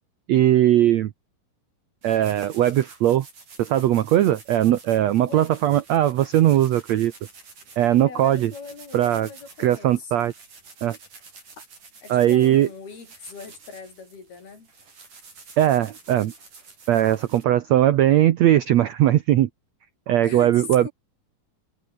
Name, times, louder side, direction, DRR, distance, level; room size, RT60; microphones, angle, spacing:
voice 1, 0.3-1.1 2.0-3.2 3.6-7.1 7.8-8.5 8.9-9.3 9.6-10.3 10.8-11.0 12.1-12.7 15.6-16.3 16.9-19.5 20.1-20.9, right 12 dB, 85° right, 1.5 m, -19 dB
sound 1, 2.0-17.4, right 4 dB, 55° right, 8.5 m, -49 dB
voice 2, 8.0-10.3 12.0-14.7 20.2-20.9, left 5 dB, 75° left, 8.2 m, -40 dB
omnidirectional pair, 4.4 m